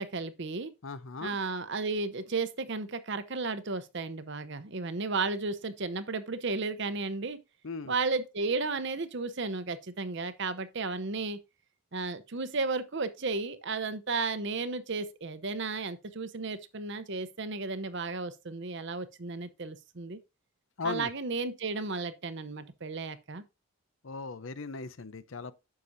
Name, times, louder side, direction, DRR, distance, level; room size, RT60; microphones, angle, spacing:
voice 1, 0.0-0.7 1.2-7.4 7.9-11.4 11.9-20.2 20.8-23.4, right 3 dB, 55° right, 0.8 m, -33 dB
voice 2, 0.8-1.4 7.6-7.9 20.8-21.1 24.0-25.5, left 4 dB, 60° left, 0.7 m, -37 dB
9.7 x 6.7 x 2.7 m
head